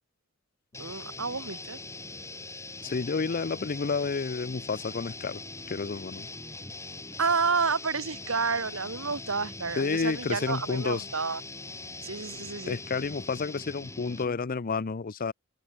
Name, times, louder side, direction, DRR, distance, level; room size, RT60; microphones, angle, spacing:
sound 1, 0.7-14.4, left 3 dB, 15° left, 7.6 m, -42 dB
voice 1, 0.8-1.8 7.2-11.4 12.0-12.8, right 4 dB, 75° right, 2.2 m, -30 dB
voice 2, 2.8-5.4 5.7-6.3 9.8-11.1 12.7-15.3, left 4 dB, 45° left, 0.6 m, -30 dB
head